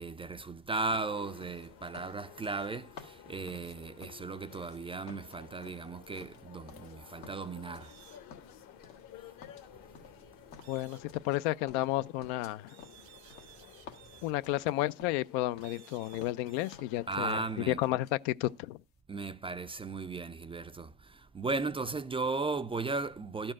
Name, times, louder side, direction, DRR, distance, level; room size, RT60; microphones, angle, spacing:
voice 1, 0.0-8.0 17.1-17.8 19.1-23.5, right 3 dB, 15° right, 0.4 m, -36 dB
sound 1, 0.9-4.8 5.1-7.0 7.2-8.0 8.3-9.1 9.4-11.4 11.7-15.3 15.6-15.8 16.1-17.0 17.3-18.1 18.4-18.6, left 6 dB, 85° left, 1.6 m, -53 dB
sound 2, 1.0-17.9, left 10 dB, 50° left, 1.1 m, -54 dB
sound 3, 7.8-8.2 10.6-11.0 12.7-14.3 15.6-16.8, right 14 dB, 85° right, 1.2 m, -57 dB
voice 2, 10.7-12.7 14.2-17.4 17.7-18.8, left 16 dB, 70° left, 0.5 m, -32 dB
12.0 x 4.4 x 7.4 m
supercardioid pair, 90°, 41 cm